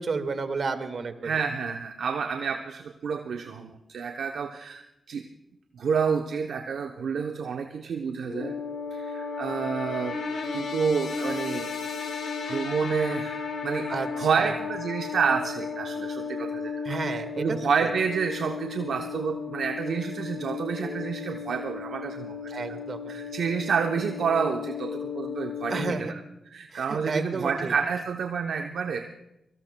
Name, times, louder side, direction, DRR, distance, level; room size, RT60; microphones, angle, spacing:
voice 1, 0.0-1.3 13.9-14.1 14.4-14.5 16.8-17.6 22.5-23.1 25.7-26.0 26.7-27.7, right 4 dB, 60° right, 8 dB, 1.6 m, -31 dB
voice 2, 1.2-5.2 5.7-8.5 8.9-10.2 10.5-11.7 12.4-22.8 23.1-29.0, right 6 dB, 80° right, 5 dB, 0.7 m, -29 dB
sound 1, 8.3-25.9, left 5 dB, 80° left, 3.5 m, -34 dB
24.5 x 17.5 x 2.2 m, 0.88 s
supercardioid pair, 50°, 0 cm